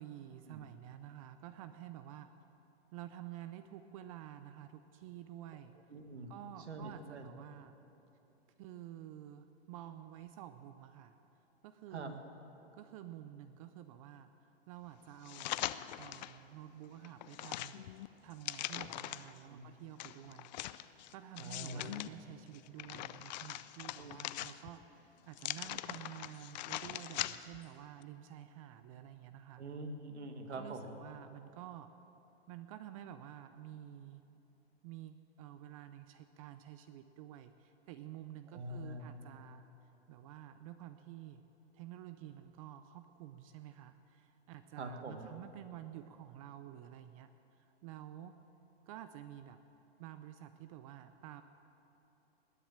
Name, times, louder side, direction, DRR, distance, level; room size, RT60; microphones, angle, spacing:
voice 1, 0.0-2.3 2.9-5.7 6.3-7.8 8.6-11.2 11.6-12.2 12.7-14.3 14.7-17.9 18.2-29.6 30.5-31.9 32.5-34.2 34.8-39.6 40.1-41.4 41.7-48.4 48.9-49.6 50.0-51.4, right 12 dB, 35° right, 10 dB, 0.5 m, -50 dB
voice 2, 5.9-6.3 6.7-7.3 11.9-12.1 19.5-19.6 21.4-21.9 24.0-24.2 29.6-30.9 38.5-39.1 44.8-45.3, right 2 dB, 85° right, 6 dB, 1.8 m, -44 dB
sound 1, 15.2-16.4 16.8-19.4 20.0-22.1 22.5-24.9 25.3-27.6 28.0-28.1, left 14 dB, 45° left, 0.4 m, -42 dB
20.0 x 7.1 x 8.7 m, 3.0 s
hypercardioid pair, 130°, 33 cm